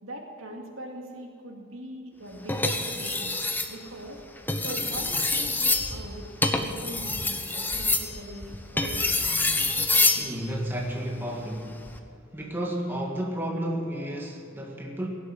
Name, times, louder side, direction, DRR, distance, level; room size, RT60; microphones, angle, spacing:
voice 1, 0.0-3.4 3.7-4.2 4.5-9.4, right 1 dB, 90° right, 1 dB, 2.4 m, -41 dB
sound 1, 2.5-3.7 4.4-10.3 11.7-12.0, left 2 dB, 10° left, 0.9 m, -26 dB
voice 2, 10.2-11.9 12.3-15.1, right 1 dB, 10° right, 0 dB, 1.8 m, -32 dB
17.0 x 8.3 x 9.1 m, 2.5 s
head